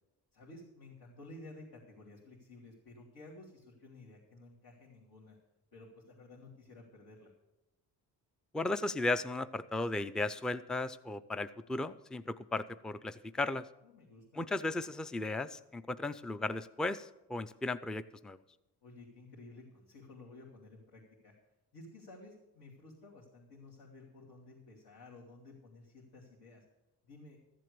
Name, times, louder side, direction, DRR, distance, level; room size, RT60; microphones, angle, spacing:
voice 1, 0.3-5.4 5.7-7.3 13.8-14.4 18.8-21.3 21.7-26.6 27.0-27.4, left 2 dB, 70° left, -6 dB, 2.9 m, -54 dB
voice 2, 8.5-13.7 14.3-18.4, left 2 dB, ahead, 14 dB, 0.3 m, -36 dB
14.0 x 7.6 x 6.7 m, 0.96 s
cardioid pair, 95°, 40 cm